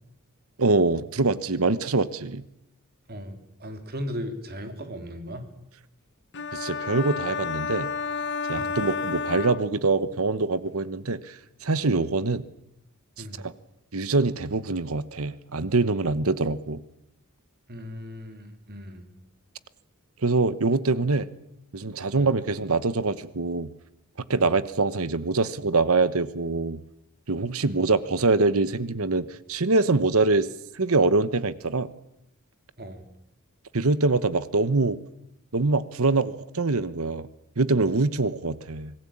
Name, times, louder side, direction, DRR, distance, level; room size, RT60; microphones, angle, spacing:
voice 1, 0.6-2.4 6.5-7.9 8.5-12.4 13.4-13.5 13.9-16.8 20.2-21.3 21.7-23.7 24.3-26.8 27.3-30.5 30.7-31.9 33.7-35.0 35.5-37.3 37.6-38.9, right 3 dB, 70° right, 16 dB, 1.1 m, -24 dB
voice 2, 3.1-5.5 8.6-8.8 13.2-13.4 17.7-19.1 22.1-22.4 24.4-24.6 27.6-27.8 32.8-33.0, equal, 45° right, 7 dB, 3.3 m, -37 dB
sound 1, 6.3-10.2, left 5 dB, 55° left, 1.3 m, -31 dB
26.0 x 19.5 x 8.7 m, 0.80 s
head